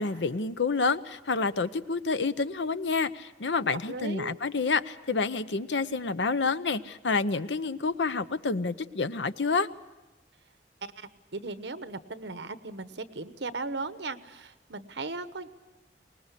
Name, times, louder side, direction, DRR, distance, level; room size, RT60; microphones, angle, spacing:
voice 1, 0.0-9.7, left 4 dB, 85° left, 13 dB, 0.8 m, -28 dB
voice 2, 3.9-4.4 10.8-15.5, right 3 dB, 80° right, 11 dB, 1.1 m, -37 dB
24.0 x 20.0 x 8.3 m, 1.1 s
head